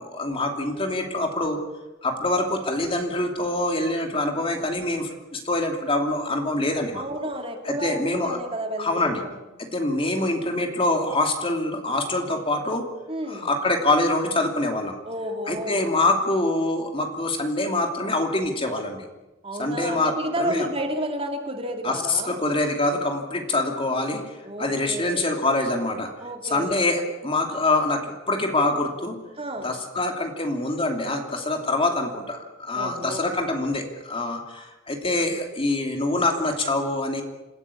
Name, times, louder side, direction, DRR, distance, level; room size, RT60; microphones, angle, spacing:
voice 1, 0.0-1.6 2.0-7.0 7.6-8.4 8.8-9.2 9.6-12.9 13.3-14.9 15.5-19.0 19.6-20.7 21.8-24.3 24.6-26.1 26.4-29.2 29.6-37.2, left 2 dB, 25° left, 4 dB, 2.8 m, -25 dB
voice 2, 6.9-9.2 13.1-13.5 15.1-15.8 19.4-22.4 24.4-25.3 26.2-26.8 29.4-29.7 32.7-33.2, right 1 dB, 30° right, 3 dB, 2.8 m, -31 dB
27.5 x 16.0 x 8.5 m, 1.1 s
head